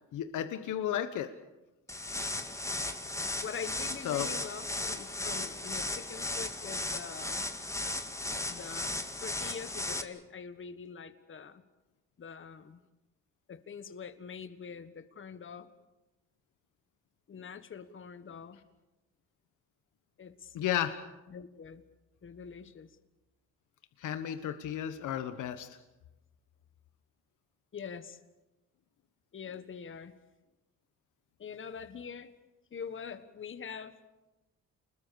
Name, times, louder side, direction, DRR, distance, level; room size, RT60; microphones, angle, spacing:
voice 1, 0.1-1.3 4.0-4.3 20.5-20.9 24.0-25.7, left 11 dB, 80° left, 9 dB, 1.4 m, -33 dB
sound 1, 1.9-10.0, left 2 dB, 10° left, 2.1 m, -36 dB
voice 2, 3.4-7.5 8.5-11.6 12.2-12.8 13.5-15.7 17.3-18.6 20.2-20.5 21.3-21.8 22.2-22.9 27.7-28.2 29.3-30.1 31.4-32.3 32.7-34.0, left 6 dB, 40° left, 10 dB, 1.6 m, -44 dB
28.5 x 21.0 x 7.1 m, 1.0 s
cardioid pair, 90°, 30 cm